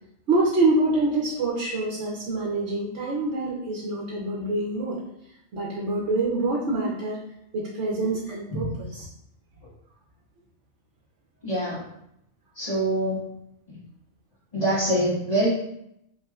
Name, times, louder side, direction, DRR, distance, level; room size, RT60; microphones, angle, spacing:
voice 1, 0.3-5.0 5.5-7.2 7.5-9.1, right 2 dB, 65° right, -3 dB, 1.1 m, -26 dB
voice 2, 8.5-8.8 11.4-11.8 12.5-13.3 14.5-15.5, right 1 dB, 30° left, -13 dB, 1.8 m, -25 dB
5.6 x 3.2 x 2.4 m, 0.78 s
omnidirectional pair, 1.3 m